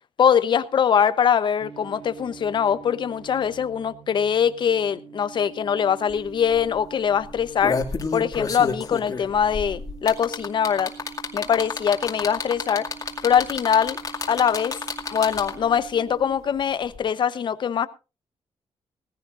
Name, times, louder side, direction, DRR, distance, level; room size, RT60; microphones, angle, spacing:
voice 1, 0.2-7.8 8.1-10.9 11.3-12.9 13.2-14.0 14.3-14.8 15.1-17.9, left 8 dB, 50° left, 0.9 m, -22 dB
sound 1, 1.6-16.4, right 6 dB, 80° right, 6.2 m, -45 dB
sound 2, 6.1-6.2 6.5-6.7 7.3-15.7 16.9-17.0, left 4 dB, 35° left, 2.3 m, -30 dB
19.5 x 15.0 x 2.5 m
cardioid pair, 130°, 10 cm